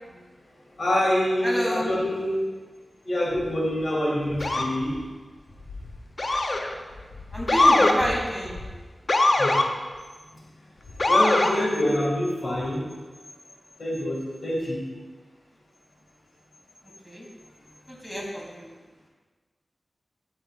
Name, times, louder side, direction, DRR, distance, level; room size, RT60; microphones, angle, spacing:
voice 1, 0.8-2.4 3.0-4.9 9.4-9.6 11.1-12.8 13.8-14.8, left 1 dB, 80° left, -4 dB, 2.2 m, -25 dB
voice 2, 1.4-2.0 7.3-8.6 17.0-17.2 17.9-18.7, equal, ahead, -4 dB, 2.6 m, -29 dB
Motor vehicle (road) / Siren, 4.4-4.8 6.2-6.7 7.5-8.0 9.1-9.7 11.0-11.5, left 2 dB, 55° left, 0.6 m, -20 dB
12.0 x 7.7 x 2.4 m, 1.4 s
wide cardioid pair, 70°, 0 cm